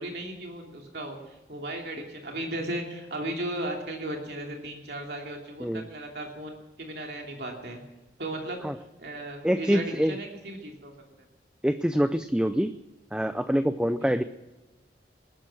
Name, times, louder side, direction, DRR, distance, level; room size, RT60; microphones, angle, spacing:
voice 1, 0.0-7.8 8.2-8.6 9.0-10.9, right 1 dB, 65° right, 1 dB, 2.8 m, -36 dB
voice 2, 9.4-10.2 11.6-12.7 13.1-14.2, equal, 5° right, 11 dB, 0.4 m, -25 dB
20.0 x 12.0 x 6.1 m, 1.1 s
head